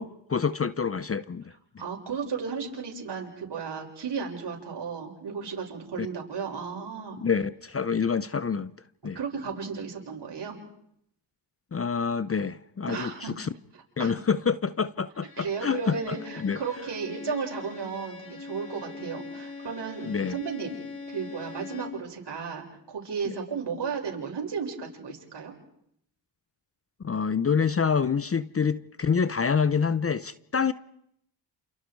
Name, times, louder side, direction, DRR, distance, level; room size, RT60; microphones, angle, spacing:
voice 1, 0.0-1.5 6.0-6.1 7.2-8.7 9.0-9.2 11.7-13.5 14.0-16.6 20.1-20.4 23.2-23.3 27.0-30.7, left 6 dB, 30° left, 0.8 m, -27 dB
voice 2, 1.8-7.2 9.2-10.6 12.9-13.3 13.7-14.1 15.4-20.7 21.1-25.5, right 5 dB, 55° right, 6.9 m, -34 dB
Bowed string instrument, 15.2-22.1, left 4 dB, 45° left, 5.1 m, -42 dB
29.0 x 28.5 x 4.8 m
cardioid pair, 70°, 48 cm